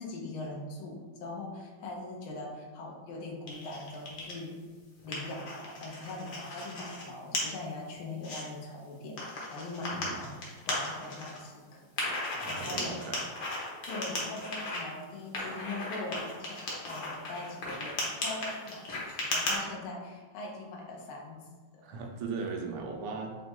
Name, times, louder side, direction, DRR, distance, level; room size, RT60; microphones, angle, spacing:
voice 1, 0.0-4.7 5.0-12.9 13.9-16.6 16.9-21.4 21.7-22.0, left 2 dB, 75° left, 0 dB, 1.6 m, -41 dB
sound 1, 3.5-4.4 4.8-7.0 7.3-7.4 7.9-8.4 9.2-11.4 12.0-14.8 15.3-19.6, left 2 dB, 55° left, 1.4 m, -36 dB
voice 2, 12.3-13.2 21.8-23.4, right 4 dB, 90° right, 2 dB, 1.6 m, -38 dB
4.5 x 2.2 x 4.2 m, 1.4 s
omnidirectional pair, 2.4 m